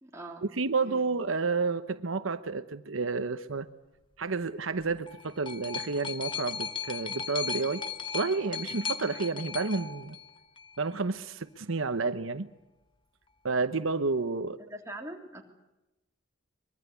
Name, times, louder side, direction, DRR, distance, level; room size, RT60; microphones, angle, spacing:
voice 1, 0.0-0.4 0.8-1.1 14.6-15.4, right 1 dB, 15° right, 1 dB, 3.3 m, -42 dB
voice 2, 0.5-3.7 4.2-7.8 8.1-10.2 10.8-12.5 13.4-14.6, right 4 dB, 80° right, 11 dB, 1.0 m, -30 dB
sound 1, 4.8-10.8 11.7-11.8, left 6 dB, 25° left, 1.0 m, -37 dB
24.5 x 22.5 x 8.3 m, 0.99 s
head